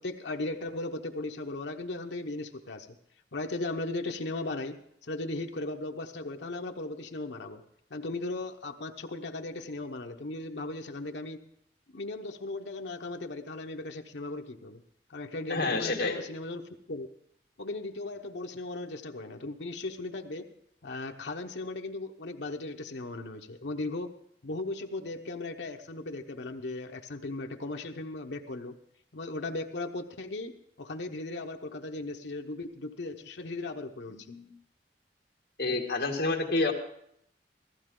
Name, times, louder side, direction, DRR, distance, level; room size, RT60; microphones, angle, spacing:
voice 1, 0.0-3.0 3.3-7.6 7.9-11.4 11.9-14.8 15.1-17.1 17.6-20.5 20.8-24.1 24.4-28.8 29.1-34.5, left 2 dB, 80° left, 4 dB, 0.9 m, -37 dB
voice 2, 15.5-16.2 35.6-36.7, left 3 dB, 65° left, 1 dB, 2.0 m, -28 dB
15.0 x 14.5 x 3.8 m, 0.70 s
head